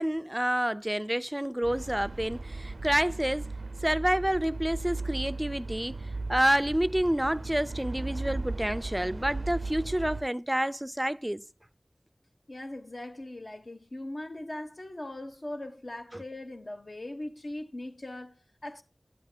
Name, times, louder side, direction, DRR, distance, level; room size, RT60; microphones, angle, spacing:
voice 1, 0.0-3.5 3.8-6.0 6.3-11.4 16.1-16.2, right 1 dB, 15° right, 0.4 m, -28 dB
sound 1, 1.6-10.2, right 3 dB, 85° right, 0.4 m, -37 dB
voice 2, 12.5-18.8, left 1 dB, 70° left, 1.1 m, -40 dB
12.0 x 10.5 x 2.3 m
wide cardioid pair, 45°, 0 cm